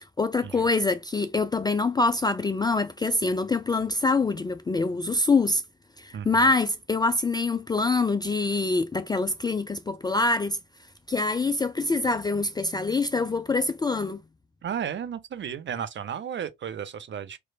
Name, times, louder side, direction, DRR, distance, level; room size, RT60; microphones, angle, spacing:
voice 1, 0.2-5.6 6.0-10.6 11.1-14.2, left 3 dB, 15° left, 0.4 m, -25 dB
voice 2, 6.1-6.4 14.6-17.4, right 8 dB, 40° right, 0.8 m, -34 dB
4.6 x 3.2 x 2.2 m
figure-of-eight pair, 45°, 30 cm